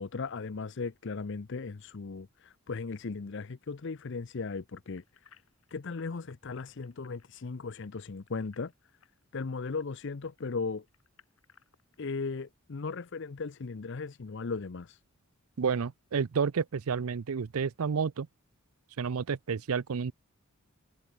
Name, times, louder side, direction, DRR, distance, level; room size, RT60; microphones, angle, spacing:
voice 1, 0.0-5.0 5.7-8.7 9.3-10.8 12.0-15.0, left 4 dB, 55° left, 0.6 m, -37 dB
sound 1, 5.0-10.4 10.9-12.3 12.8-12.9 13.4-13.5, left 7 dB, 75° left, 4.8 m, -62 dB
voice 2, 15.6-18.3 19.0-20.1, right 6 dB, 80° right, 0.5 m, -30 dB
head